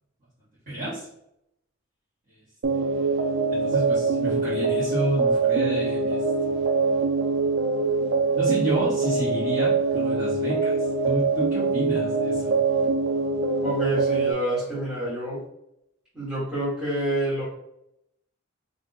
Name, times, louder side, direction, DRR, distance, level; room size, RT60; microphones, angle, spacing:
voice 1, 0.7-1.1 2.3-2.4 2.7-3.1 3.5-6.9 8.3-12.6, right 1 dB, 35° right, -11 dB, 1.1 m, -31 dB
sound 1, 2.6-14.3, right 4 dB, 55° right, 0.4 m, -23 dB
voice 2, 13.6-15.4 16.1-17.4, right 1 dB, 5° right, -12 dB, 1.1 m, -28 dB
2.5 x 2.2 x 3.7 m, 0.80 s
head